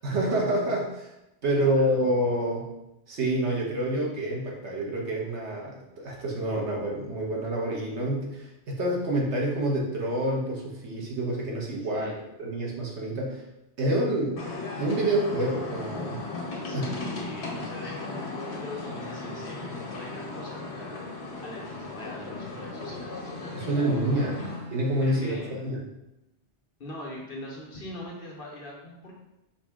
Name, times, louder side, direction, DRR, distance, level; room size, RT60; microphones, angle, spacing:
voice 1, 0.0-1.1 1.4-2.7 3.1-12.1 12.4-13.4 13.8-14.4 14.8-16.2 16.7-17.0 23.5-24.4 24.7-25.8, right 1 dB, 75° right, -2 dB, 1.4 m, -27 dB
voice 2, 1.5-2.1 11.9-12.2 16.6-23.8 24.1-25.7 26.8-29.1, left 1 dB, 55° left, -2 dB, 1.3 m, -42 dB
sound 1, 14.4-24.6, left 3 dB, 75° left, 1.3 m, -36 dB
Bowed string instrument, 22.2-25.6, left 2 dB, 60° right, 1.0 m, -44 dB
5.4 x 2.8 x 3.5 m, 0.91 s
omnidirectional pair, 1.2 m